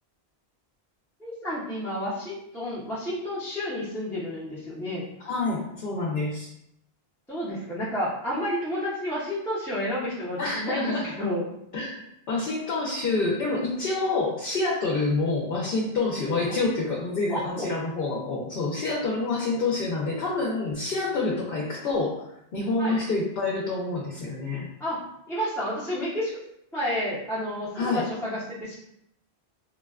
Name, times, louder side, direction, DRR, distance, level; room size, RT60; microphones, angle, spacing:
voice 1, 1.2-5.0 7.3-11.5 16.5-16.6 17.3-17.7 21.5-21.6 22.8-23.0 24.8-26.3 26.7-28.7, equal, 5° left, -10 dB, 0.5 m, -30 dB
voice 2, 5.2-6.5 10.4-11.1 11.7-11.9 12.3-22.1 22.5-24.7 27.7-28.0, left 3 dB, 65° left, -3 dB, 0.7 m, -27 dB
3.8 x 2.1 x 2.3 m, 0.79 s
omnidirectional pair, 1.1 m